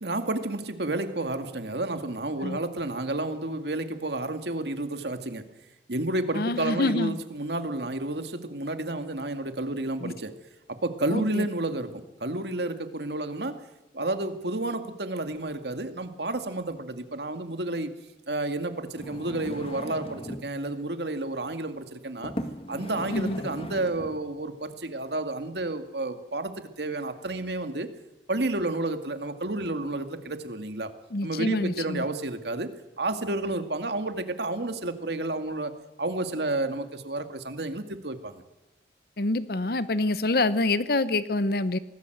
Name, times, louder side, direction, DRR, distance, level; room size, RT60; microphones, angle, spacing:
voice 1, 0.0-5.5 5.9-10.3 10.7-13.7 13.9-17.9 18.3-22.3 22.7-27.9 28.3-30.9 31.2-38.4, right 2 dB, 70° right, 8 dB, 2.1 m, -31 dB
voice 2, 6.3-7.2 10.0-10.1 11.1-11.5 23.1-23.4 31.1-32.1 39.2-41.8, left 2 dB, 55° left, 15 dB, 0.8 m, -26 dB
sound 1, 18.9-20.5 21.4-21.6 22.2-24.2 24.9-25.0, equal, 30° left, 1.9 m, -38 dB
25.0 x 19.0 x 7.9 m, 0.96 s
head